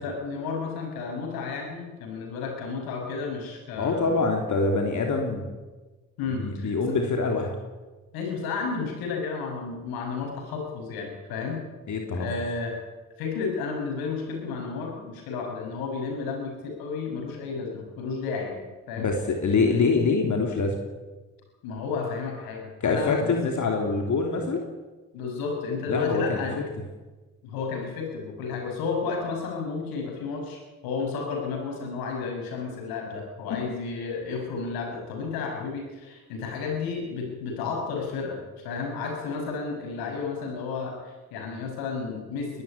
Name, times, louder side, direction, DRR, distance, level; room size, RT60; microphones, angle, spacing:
voice 1, 0.0-4.2 6.2-6.9 8.1-11.6 12.1-12.7 13.2-19.1 19.5-19.7 21.6-23.5 25.1-26.6 27.4-42.6, left 4 dB, 85° left, 2 dB, 6.4 m, -32 dB
voice 2, 3.8-5.5 6.3-7.5 11.9-12.3 19.0-20.8 22.8-24.6 25.9-26.4, left 4 dB, 55° left, 2 dB, 3.3 m, -25 dB
20.5 x 13.5 x 10.0 m, 1.3 s
supercardioid pair, 55°, 35 cm